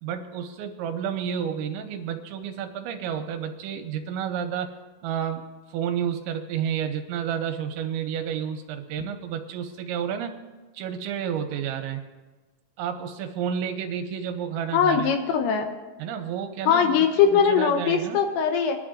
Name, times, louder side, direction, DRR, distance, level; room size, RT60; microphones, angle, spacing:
voice 1, 0.0-4.7 5.0-10.3 10.7-12.0 12.8-15.1 16.0-17.1 17.3-18.2, right 8 dB, 85° right, 5 dB, 2.9 m, -30 dB
voice 2, 14.7-15.7 16.7-18.8, left 7 dB, 75° left, 5 dB, 2.9 m, -21 dB
22.0 x 10.5 x 2.5 m, 1.2 s
omnidirectional pair, 5.5 m